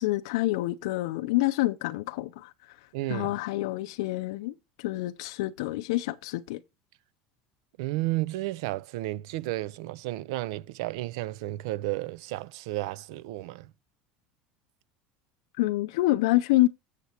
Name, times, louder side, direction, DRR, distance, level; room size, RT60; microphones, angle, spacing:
voice 1, 0.0-2.8 3.1-6.6 15.6-16.7, left 18 dB, 90° left, 0.5 m, -27 dB
voice 2, 2.9-3.3 7.8-13.7, right 17 dB, 80° right, 0.4 m, -32 dB
8.2 x 6.7 x 4.3 m
cardioid pair, 165°, 3 cm